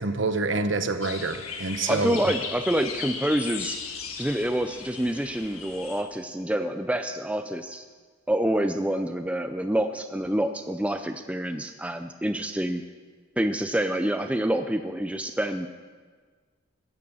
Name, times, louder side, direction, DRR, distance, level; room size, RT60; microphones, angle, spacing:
voice 1, 0.0-2.3, right 3 dB, 60° right, 9 dB, 0.9 m, -27 dB
sound 1, 1.0-6.0, left 6 dB, 90° left, 1.6 m, -36 dB
voice 2, 1.9-3.8 4.2-7.8 8.3-12.8 13.4-15.7, right 1 dB, 5° right, 7 dB, 0.4 m, -27 dB
14.5 x 9.3 x 6.9 m, 1.5 s
head